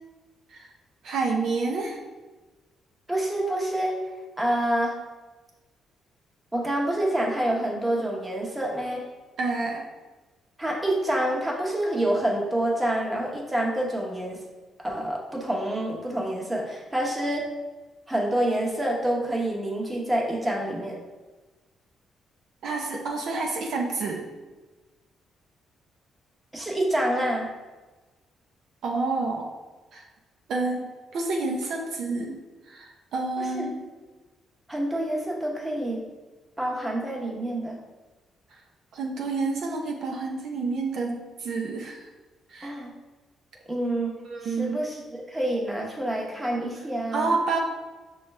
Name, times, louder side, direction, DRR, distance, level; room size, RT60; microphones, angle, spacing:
voice 1, 1.0-2.0 9.4-9.8 22.6-24.3 28.8-29.5 29.9-30.1 30.5-32.4 32.7-33.8 38.9-42.0 42.5-42.7 44.2-44.8 47.1-47.6, right 3 dB, 70° right, 0 dB, 0.5 m, -29 dB
voice 2, 3.1-3.9 4.4-4.9 6.5-9.0 10.6-14.4 14.8-17.4 18.1-21.0 26.5-27.5 33.4-33.7 34.7-36.0 36.6-37.8 42.6-42.9 43.7-44.1 44.4-45.0 45.3-47.3, right 1 dB, 15° right, -2 dB, 0.9 m, -27 dB
5.8 x 2.3 x 3.2 m, 1.2 s
cardioid pair, 90°, 0 cm